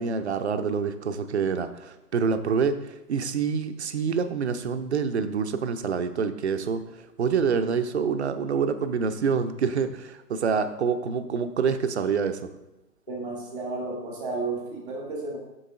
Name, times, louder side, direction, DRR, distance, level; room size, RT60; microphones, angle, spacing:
voice 1, 0.0-12.4, right 6 dB, 45° right, 9 dB, 0.5 m, -26 dB
voice 2, 13.1-15.4, right 3 dB, 5° left, -13 dB, 0.6 m, -32 dB
6.9 x 5.3 x 3.8 m, 0.97 s
figure-of-eight pair, 140°, 48 cm